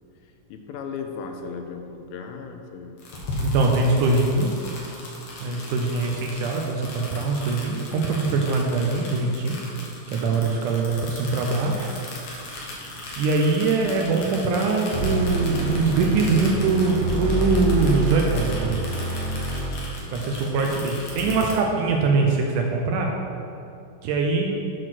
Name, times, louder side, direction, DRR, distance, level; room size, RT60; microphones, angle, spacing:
voice 1, 0.2-3.0 20.4-20.8 21.2-21.5, left 5 dB, 85° left, 4 dB, 2.4 m, -37 dB
sound 1, 3.0-21.5, left 2 dB, 60° left, 2.2 m, -37 dB
voice 2, 3.4-4.6 5.4-9.6 10.1-11.9 13.2-18.8 20.1-23.1 24.0-24.5, right 3 dB, 80° right, 1 dB, 1.8 m, -22 dB
sound 2, 14.9-19.7, right 1 dB, 65° right, 2.3 m, -27 dB
7.8 x 4.6 x 6.1 m, 2.7 s
omnidirectional pair, 4.2 m